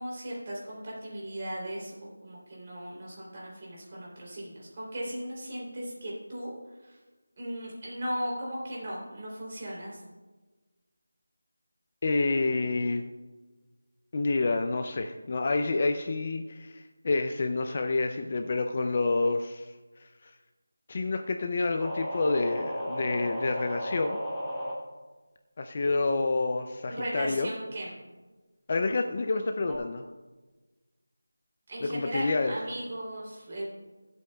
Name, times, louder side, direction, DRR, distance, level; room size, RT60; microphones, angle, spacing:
voice 1, 0.0-6.5 6.8-7.0 7.4-10.0 26.9-27.9 31.7-33.6, equal, 25° right, -4 dB, 3.1 m, -37 dB
voice 2, 12.0-13.0 14.1-20.3 20.9-24.2 25.6-27.5 28.7-30.1 31.8-32.5, left 3 dB, 25° left, 6 dB, 0.4 m, -28 dB
sound 1, 21.8-24.8 29.7-29.8, equal, ahead, 1.0 m, -34 dB
24.0 x 8.1 x 2.3 m, 1.3 s
figure-of-eight pair, 180°, 0 cm